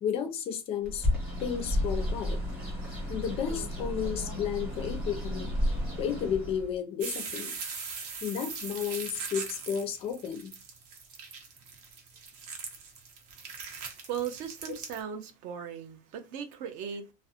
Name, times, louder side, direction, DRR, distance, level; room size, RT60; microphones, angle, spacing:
voice 1, 0.0-1.1 1.4-2.4 3.1-5.5 6.0-7.5 8.2-10.5, left 8 dB, 30° left, 0.4 m, -32 dB
Bird, 0.8-6.7, left 1 dB, 5° right, 0.9 m, -32 dB
sound 1, 7.0-15.0, right 5 dB, 80° right, 0.9 m, -40 dB
voice 2, 13.8-17.1, right 8 dB, 45° right, 0.4 m, -37 dB
2.4 x 2.0 x 2.7 m
cardioid pair, 165°, 19 cm